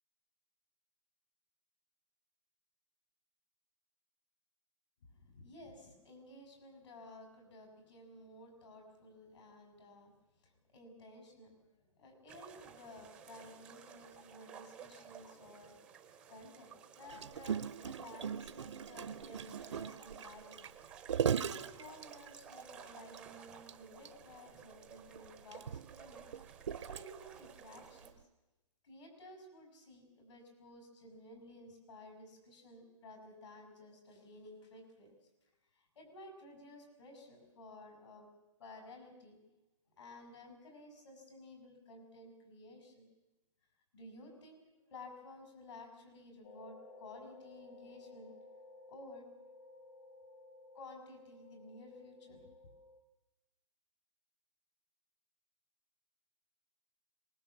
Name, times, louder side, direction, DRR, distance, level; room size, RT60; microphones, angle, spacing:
voice 1, 5.1-10.1 10.4-15.8 16.3-20.6 21.4-26.3 26.8-28.1 28.8-35.1 35.7-38.3 38.6-39.4 40.0-43.1 43.9-48.3 48.9-49.3 50.7-52.4, left 1 dB, 60° left, 4 dB, 6.4 m, -54 dB
sound 1, 12.3-28.1, right 8 dB, 5° right, 0.8 m, -55 dB
Gurgling, 17.1-22.6 23.1-23.2 23.5-23.7 24.1-24.2 24.9-27.4 28.1-28.2, right 8 dB, 60° right, 0.8 m, -38 dB
sound 2, 46.4-53.0, left 2 dB, 40° left, 1.8 m, -56 dB
23.0 x 21.0 x 7.2 m, 1.0 s
hypercardioid pair, 175°, 17 cm